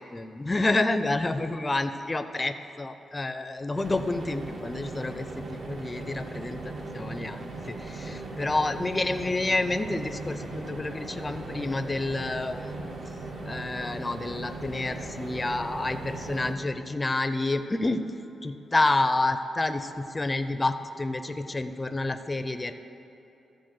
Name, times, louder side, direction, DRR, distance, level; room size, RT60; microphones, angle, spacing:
voice 1, 0.0-12.7 13.5-18.0 18.4-22.7, left 2 dB, 20° left, 10 dB, 0.4 m, -29 dB
sound 1, 3.7-16.5, right 2 dB, 65° right, 1.1 m, -38 dB
13.5 x 4.8 x 6.2 m, 2.9 s
cardioid pair, 120°, 0 cm